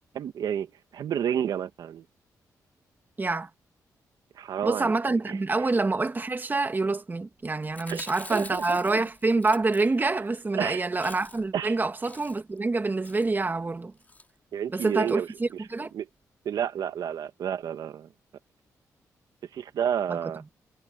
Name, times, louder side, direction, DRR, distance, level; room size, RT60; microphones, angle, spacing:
voice 1, 0.1-2.0 4.3-4.9 5.3-5.4 7.9-8.0 8.3-8.8 10.5-10.8 11.5-11.7 14.5-15.3 15.9-16.1 16.4-18.1 19.5-20.4, right 9 dB, 80° right, 1.3 m, -30 dB
voice 2, 3.2-3.5 4.6-13.9 14.7-15.9 20.1-20.2, right 3 dB, 30° right, 2.1 m, -26 dB
Chewing mastication, 7.6-10.3 10.6-10.7 10.9-11.6 11.9-12.6 13.0-13.3 14.0-14.3 14.9-15.2 15.5-15.6 15.8-15.9, left 2 dB, 25° left, 4.1 m, -46 dB
cardioid pair, 75°, 7 cm